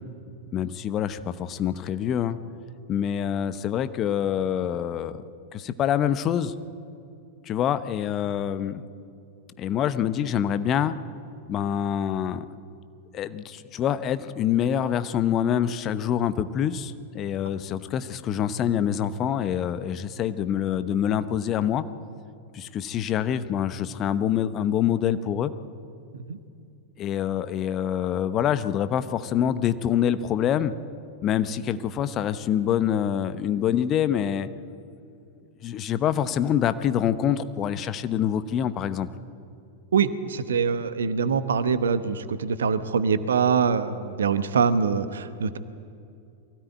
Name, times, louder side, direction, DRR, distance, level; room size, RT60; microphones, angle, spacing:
voice 1, 0.5-2.4 2.9-5.2 5.5-6.5 7.5-8.8 9.6-11.0 11.5-12.5 13.1-21.8 22.5-25.5 27.0-30.7 31.2-34.5 35.6-39.1, left 9 dB, 30° left, 13 dB, 0.9 m, -26 dB
voice 2, 39.9-45.6, right 6 dB, 65° right, 12 dB, 1.1 m, -24 dB
23.5 x 17.0 x 9.2 m, 2.5 s
figure-of-eight pair, 90°, 0 cm